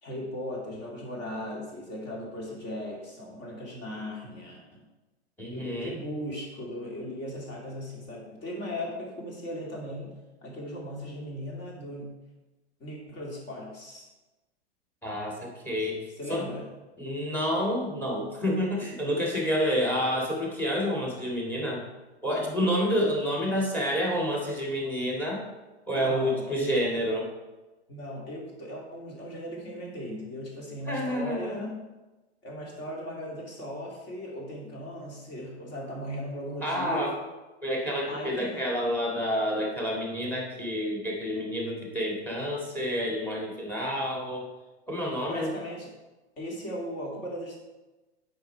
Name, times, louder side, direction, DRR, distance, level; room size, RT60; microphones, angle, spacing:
voice 1, 0.0-4.8 5.5-10.1 10.4-12.1 12.8-14.0 16.2-16.7 23.4-23.6 25.9-26.8 27.9-31.8 32.4-37.2 38.1-38.6 45.3-45.9 46.4-47.6, equal, 30° left, -1 dB, 2.4 m, -37 dB
voice 2, 5.4-6.0 15.0-16.5 17.0-21.9 22.2-25.4 25.9-27.3 30.9-31.6 36.6-37.1 37.6-44.5 44.9-45.5, equal, 5° left, 0 dB, 1.8 m, -29 dB
8.0 x 5.4 x 4.4 m, 1.1 s
hypercardioid pair, 125°, 33 cm